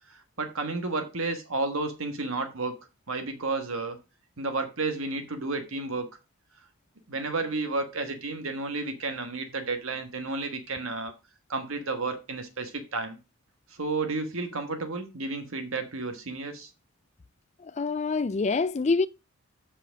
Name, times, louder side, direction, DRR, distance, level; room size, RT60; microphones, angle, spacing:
voice 1, 0.1-2.8 3.1-4.0 4.4-6.1 7.1-11.1 11.5-13.2 13.7-16.7, right 3 dB, 65° right, 1.4 m, -32 dB
voice 2, 17.6-19.1, left 4 dB, 30° left, 0.4 m, -26 dB
7.7 x 5.8 x 4.9 m
head